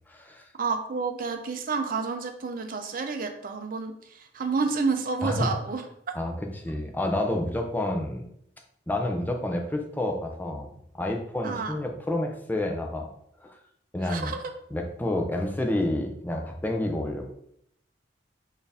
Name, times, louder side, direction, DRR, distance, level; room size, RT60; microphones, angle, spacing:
voice 1, 0.1-0.5 5.2-5.5 6.1-8.2 8.9-13.1 13.4-13.6 13.9-14.3 14.7-17.3, left 1 dB, 10° left, 2 dB, 0.5 m, -29 dB
voice 2, 0.6-5.8 11.4-11.7 14.0-14.4, right 4 dB, 50° right, 5 dB, 0.5 m, -29 dB
4.2 x 2.6 x 3.4 m, 0.71 s
head